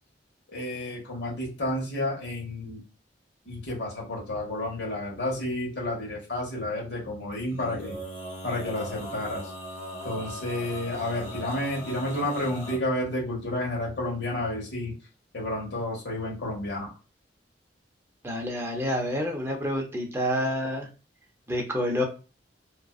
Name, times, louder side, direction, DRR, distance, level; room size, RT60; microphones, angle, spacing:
voice 1, 0.5-2.8 3.5-8.0 8.4-9.5 10.0-14.9 15.3-16.9, left 1 dB, 70° left, -3 dB, 1.1 m, -31 dB
Male singing, 7.5-12.8, equal, 35° left, 0.8 m, -39 dB
voice 2, 18.2-20.9 21.5-22.0, equal, 15° right, 1 dB, 0.6 m, -28 dB
2.5 x 2.2 x 2.3 m, 0.32 s
head